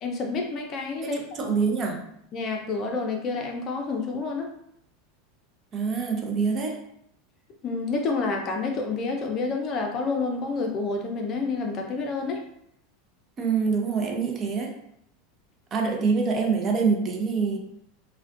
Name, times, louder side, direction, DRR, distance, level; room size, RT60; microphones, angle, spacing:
voice 1, 0.0-1.5 2.3-4.5 7.6-12.4, left 4 dB, 40° left, 2 dB, 0.5 m, -29 dB
voice 2, 1.0-2.1 5.7-6.9 13.4-14.8 15.7-17.6, right 5 dB, 35° right, 2 dB, 0.5 m, -25 dB
2.4 x 2.2 x 2.4 m, 0.73 s
hypercardioid pair, 105°, 0 cm